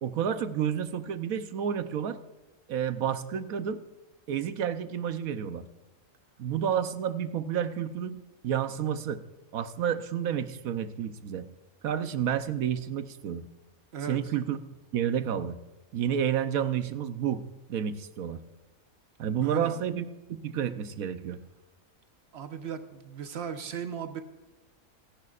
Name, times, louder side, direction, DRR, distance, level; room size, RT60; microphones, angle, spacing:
voice 1, 0.0-2.2 2.7-3.8 4.3-5.6 6.4-8.2 8.4-9.2 9.5-11.5 11.8-13.4 14.1-14.6 14.9-15.6 15.9-17.4 17.7-18.4 19.2-21.4, right 9 dB, 75° right, 11 dB, 1.2 m, -30 dB
voice 2, 19.4-19.7 22.3-24.2, right 7 dB, 50° right, 8 dB, 1.2 m, -36 dB
27.5 x 11.0 x 2.5 m, 1.1 s
omnidirectional pair, 1.5 m